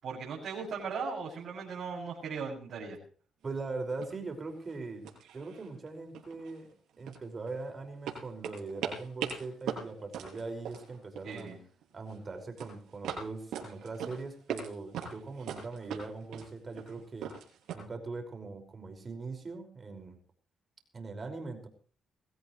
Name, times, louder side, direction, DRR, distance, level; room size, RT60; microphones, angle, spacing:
voice 1, 0.0-3.0 11.2-11.6, right 5 dB, 60° right, -3 dB, 6.9 m, -38 dB
voice 2, 3.4-5.0 5.3-11.5 11.9-17.3 17.7-20.2 20.9-21.7, right 3 dB, 35° right, 4 dB, 5.5 m, -41 dB
sound 1, 3.5-3.6 4.0-4.3 4.6-4.8 5.0-5.9 6.1-7.6 8.1-11.5 11.8-12.2 12.6-14.7 14.9-17.8, right 8 dB, 80° right, 6.8 m, -40 dB
22.5 x 16.0 x 3.2 m, 0.43 s
cardioid pair, 90°, 0 cm